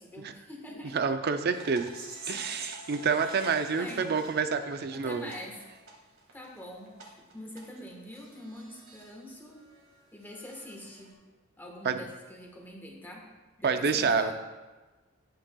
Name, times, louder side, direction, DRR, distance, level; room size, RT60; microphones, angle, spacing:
voice 1, 0.0-1.0 3.2-3.4 3.7-4.0 4.9-5.5 6.3-9.6 10.1-11.1 11.6-13.2 13.6-14.3, left 1 dB, 10° left, -1 dB, 1.3 m, -44 dB
voice 2, 0.9-1.9 2.3-5.3 11.8-12.0 13.6-14.3, right 5 dB, 50° right, 8 dB, 0.5 m, -28 dB
sound 1, 1.5-9.1 9.5-11.1, right 3 dB, 75° right, 1.8 m, -46 dB
10.0 x 8.7 x 2.3 m, 1.2 s
head